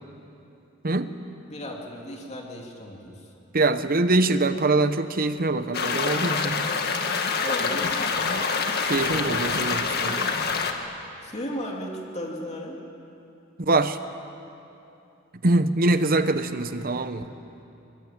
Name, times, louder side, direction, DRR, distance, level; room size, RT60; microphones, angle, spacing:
voice 1, 1.5-3.3 7.4-7.9 11.2-12.8, left 1 dB, 35° left, 0 dB, 2.8 m, -35 dB
voice 2, 3.5-6.6 8.8-10.4 13.6-14.0 15.4-17.2, right 2 dB, 45° right, 11 dB, 1.0 m, -23 dB
sound 1, 5.7-10.7, left 5 dB, 50° left, 1.9 m, -26 dB
23.5 x 23.0 x 9.0 m, 2.8 s
head